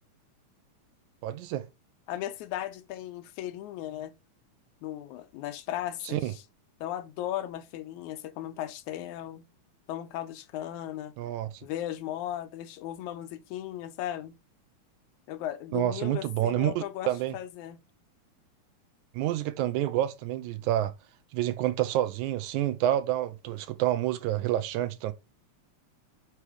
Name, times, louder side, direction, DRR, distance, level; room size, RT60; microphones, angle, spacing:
voice 1, 1.2-1.7 6.1-6.3 11.2-11.5 15.7-17.3 19.1-20.9 21.3-25.1, right 13 dB, 85° right, 2.1 m, -28 dB
voice 2, 2.1-4.1 4.8-6.4 6.8-9.5 9.9-11.1 11.6-14.4 15.3-17.8, left 12 dB, 80° left, 2.0 m, -36 dB
5.6 x 4.8 x 4.8 m
omnidirectional pair, 3.5 m